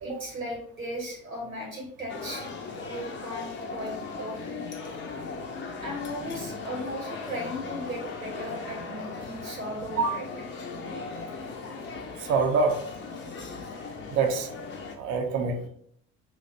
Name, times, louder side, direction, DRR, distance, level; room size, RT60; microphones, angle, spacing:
voice 1, 0.0-2.5 2.9-4.6 5.8-10.3, equal, 90° right, -3 dB, 0.9 m, -37 dB
sound 1, 2.1-14.9, left 4 dB, 30° left, 0.5 m, -38 dB
voice 2, 12.2-12.8 14.1-14.5 15.0-15.7, right 4 dB, 40° right, 3 dB, 0.5 m, -25 dB
2.7 x 2.1 x 3.9 m, 0.66 s
figure-of-eight pair, 60°, 39 cm